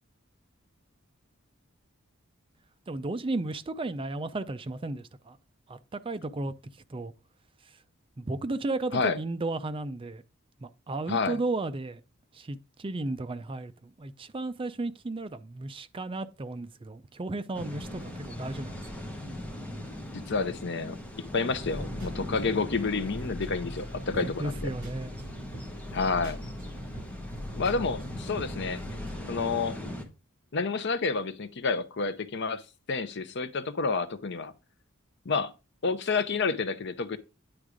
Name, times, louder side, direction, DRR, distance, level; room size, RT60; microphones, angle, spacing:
voice 1, 2.9-5.4 5.7-6.5 6.9-7.1 8.2-10.2 10.6-12.0 12.3-19.0 24.2-25.1, right 2 dB, 25° right, 0.4 m, -34 dB
voice 2, 11.1-11.4 20.1-24.7 25.9-26.4 27.6-28.8 29.3-29.8 30.5-32.6 32.9-34.5 35.3-35.5 35.8-37.2, left 4 dB, 55° left, 0.6 m, -29 dB
sound 1, 17.5-30.0, left 1 dB, 5° left, 1.1 m, -40 dB
sound 2, 21.5-29.2, equal, 55° right, 4.0 m, -41 dB
9.6 x 3.6 x 5.0 m
head